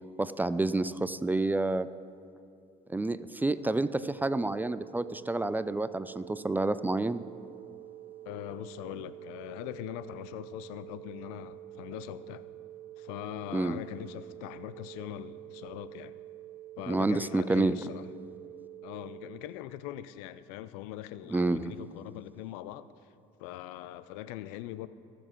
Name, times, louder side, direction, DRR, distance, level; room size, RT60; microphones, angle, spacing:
voice 1, 0.2-1.9 2.9-7.2 13.5-13.8 16.9-17.7 21.3-21.7, right 2 dB, 10° right, 14 dB, 0.3 m, -29 dB
sound 1, 3.5-19.4, right 13 dB, 45° right, 0.9 m, -47 dB
voice 2, 8.3-12.5 13.0-16.2 16.8-18.1 18.8-22.9 23.4-24.9, left 13 dB, 80° left, 15 dB, 0.4 m, -41 dB
19.5 x 6.9 x 3.0 m, 2.5 s
supercardioid pair, 80°, 18 cm